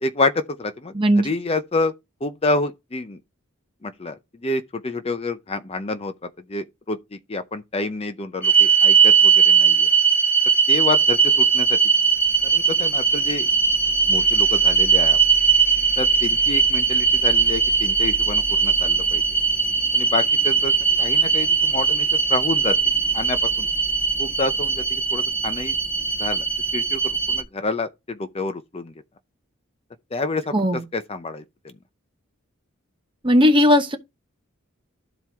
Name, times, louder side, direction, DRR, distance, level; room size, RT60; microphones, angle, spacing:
voice 1, 0.0-0.9 1.2-1.9 2.2-3.2 3.8-4.2 4.4-6.1 6.5-7.0 7.3-9.9 10.7-11.8 12.4-13.5 14.1-15.2 16.0-19.2 19.9-20.7 21.0-22.8 23.1-23.7 24.2-25.7 26.2-26.4 26.7-28.9 30.1-30.5 30.9-31.4, left 2 dB, 30° left, 0.6 m, -28 dB
voice 2, 0.9-1.4 30.5-30.8 33.2-34.0, equal, 25° right, 0.9 m, -17 dB
sound 1, 8.4-27.4, right 6 dB, 10° left, 2.8 m, -19 dB
12.5 x 4.4 x 3.5 m
head